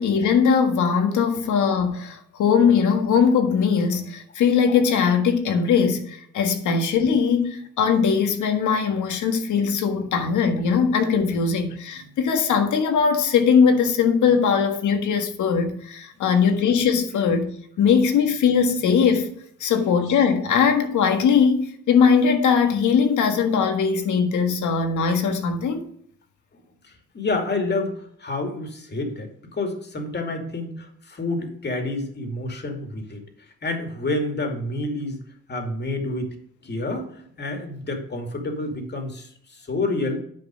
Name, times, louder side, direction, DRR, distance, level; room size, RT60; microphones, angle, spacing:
voice 1, 0.0-19.3 19.6-25.9, left 6 dB, 75° left, 1.6 m, -20 dB
voice 2, 26.5-33.2 33.6-35.2 35.5-36.4 36.6-40.2, left 2 dB, 35° left, 2.4 m, -29 dB
9.2 x 5.1 x 6.2 m
cardioid pair, 90°, 30 cm